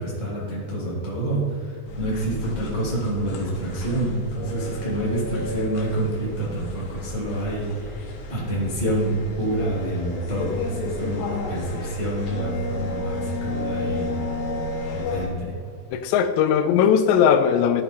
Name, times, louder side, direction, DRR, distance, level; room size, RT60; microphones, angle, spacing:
voice 1, 0.0-14.1 14.9-15.5, right 1 dB, 75° right, -8 dB, 0.4 m, -27 dB
sound 1, 1.9-15.3, left 2 dB, 70° left, 3.2 m, -32 dB
voice 2, 15.9-17.8, left 8 dB, 90° left, 10 dB, 2.8 m, -19 dB
12.5 x 4.1 x 4.3 m, 2.2 s
omnidirectional pair, 4.9 m